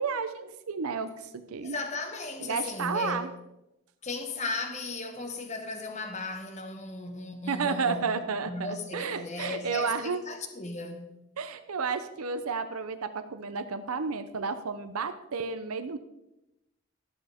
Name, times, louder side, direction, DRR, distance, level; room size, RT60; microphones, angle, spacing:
voice 1, 0.0-1.8 2.4-3.3 7.5-10.2 11.4-16.0, right 5 dB, 90° right, 0.7 m, -32 dB
voice 2, 1.6-3.3 4.0-8.2 8.4-11.1, left 3 dB, 30° left, 1.4 m, -36 dB
13.5 x 11.0 x 3.6 m
head